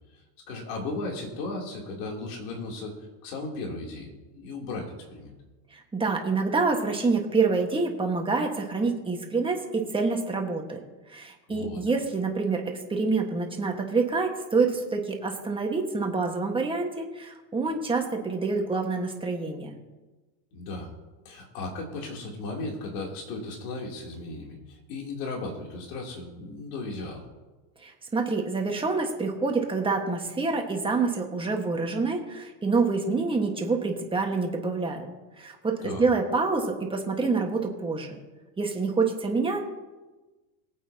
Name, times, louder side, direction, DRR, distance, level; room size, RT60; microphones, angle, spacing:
voice 1, 0.1-3.0 3.2-5.3 11.5-11.8 20.5-20.9 21.2-27.3 35.8-36.0, left 2 dB, 70° left, -1 dB, 3.2 m, -36 dB
voice 2, 5.7-10.8 11.1-19.8 27.8-35.0 35.4-38.1 38.6-39.7, right 4 dB, 10° right, 2 dB, 1.4 m, -27 dB
23.0 x 8.6 x 2.8 m, 1.2 s
supercardioid pair, 140°, 49 cm